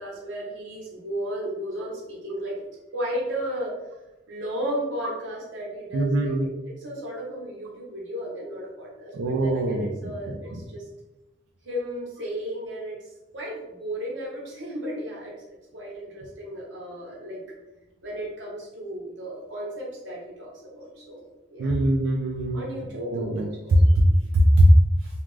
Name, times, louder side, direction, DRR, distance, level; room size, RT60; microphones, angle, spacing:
voice 1, 0.0-2.6 2.9-3.7 4.3-10.8 11.6-13.0 13.3-15.4 15.7-17.4 18.0-21.2 21.5-21.7 22.5-23.3 23.6-23.8, equal, 65° right, -4 dB, 1.0 m, -34 dB
voice 2, 5.9-6.5 9.2-9.9 10.3-10.4 21.6-22.6 22.9-23.5 24.3-24.7, right 1 dB, 90° right, -1 dB, 0.4 m, -22 dB
2.4 x 2.4 x 3.1 m, 1.0 s
head